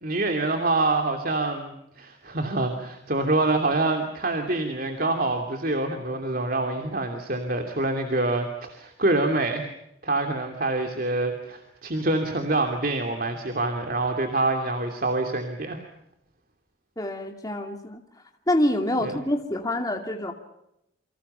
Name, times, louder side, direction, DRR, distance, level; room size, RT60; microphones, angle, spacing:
voice 1, 0.0-9.7 10.0-15.8 19.0-19.1, right 2 dB, 45° right, 4 dB, 2.8 m, -26 dB
voice 2, 17.0-18.0 18.5-20.3, left 1 dB, 20° left, 4 dB, 2.5 m, -26 dB
29.0 x 25.5 x 5.7 m, 0.82 s
head